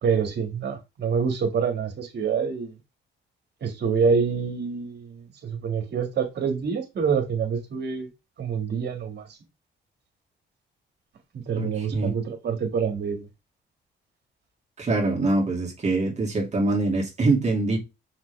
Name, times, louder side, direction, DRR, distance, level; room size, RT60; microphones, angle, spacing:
voice 1, 0.0-2.7 3.6-8.1 8.4-9.4 11.3-13.3, right 6 dB, 55° right, 2.2 m, -26 dB
voice 2, 11.6-12.1 14.8-17.8, right 2 dB, 35° right, 2.7 m, -24 dB
5.9 x 5.5 x 3.5 m
cardioid pair, 90°, 20 cm